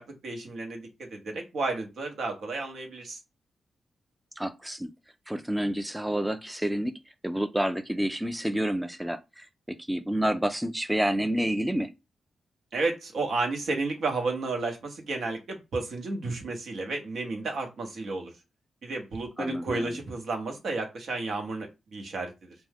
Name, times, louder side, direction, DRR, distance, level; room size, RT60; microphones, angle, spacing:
voice 1, 0.0-3.2 12.7-18.3 18.8-22.5, right 3 dB, 70° right, 0.8 m, -32 dB
voice 2, 4.4-4.9 5.3-7.0 7.2-11.9 19.4-20.0, right 1 dB, 10° right, 0.4 m, -29 dB
2.6 x 2.2 x 3.4 m
supercardioid pair, 45°, 0 cm